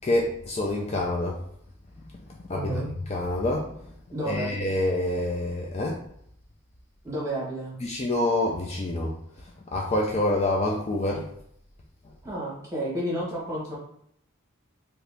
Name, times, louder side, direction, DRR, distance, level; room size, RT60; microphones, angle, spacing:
voice 1, 0.0-1.4 2.5-2.8 3.1-3.7 4.3-6.0 7.8-9.1 9.7-11.2, left 1 dB, 30° left, -1 dB, 0.3 m, -26 dB
voice 2, 2.5-2.9 4.1-4.6 7.0-7.8 12.2-13.8, right 1 dB, 15° right, -6 dB, 1.1 m, -31 dB
2.8 x 2.6 x 3.3 m, 0.70 s
head